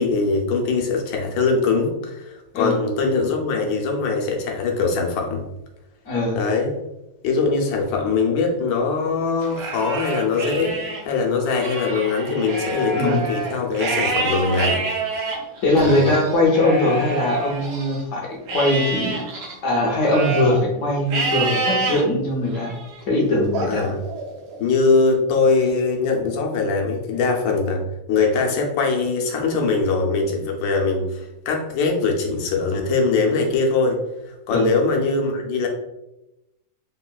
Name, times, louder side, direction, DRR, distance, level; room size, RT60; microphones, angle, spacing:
voice 1, 0.0-5.4 6.3-6.7 7.2-10.7 11.0-14.9 15.8-16.1 23.7-24.0 24.6-27.8 28.1-34.0 34.3-35.7, left 4 dB, 90° left, 1 dB, 1.3 m, -22 dB
voice 2, 6.1-6.4 12.9-13.2 15.6-19.2 19.6-22.7 23.0-23.9 34.5-34.7, left 1 dB, 65° left, -1 dB, 0.8 m, -21 dB
Livestock farm animals working animals, 9.4-11.0 11.4-18.0 18.5-20.6 21.1-22.0 22.5-23.0 23.5-24.6, right 2 dB, 70° right, 1.2 m, -27 dB
3.6 x 2.3 x 2.2 m, 0.92 s
omnidirectional pair, 2.0 m